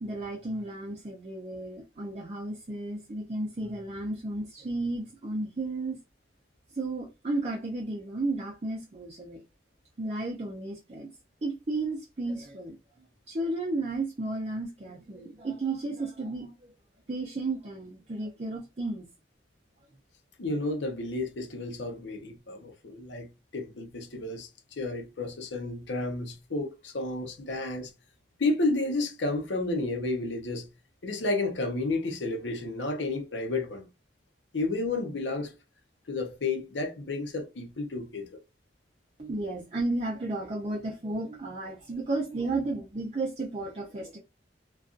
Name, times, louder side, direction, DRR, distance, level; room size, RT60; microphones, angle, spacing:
voice 1, 0.0-6.0 6.7-9.4 10.0-11.1 11.4-12.8 13.3-16.7 17.1-19.1 39.2-44.2, right 2 dB, 35° right, 0.5 m, -33 dB
voice 2, 20.4-27.9 28.4-30.7 31.0-33.9 34.5-35.5 36.1-38.3, left 2 dB, 80° left, 0.7 m, -31 dB
2.5 x 2.3 x 2.4 m
head